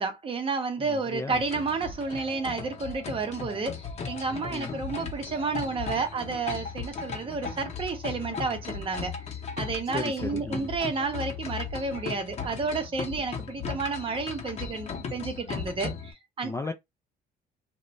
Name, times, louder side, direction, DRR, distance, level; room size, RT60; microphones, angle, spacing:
voice 1, 0.0-9.1 9.6-16.5, right 4 dB, 30° right, 0.7 m, -31 dB
voice 2, 0.8-1.4 4.5-4.8 9.9-10.7 16.4-16.7, left 3 dB, 15° left, 0.3 m, -35 dB
sound 1, 1.3-16.1, left 5 dB, 40° left, 0.8 m, -37 dB
2.5 x 2.1 x 3.0 m
cardioid pair, 110°, 17 cm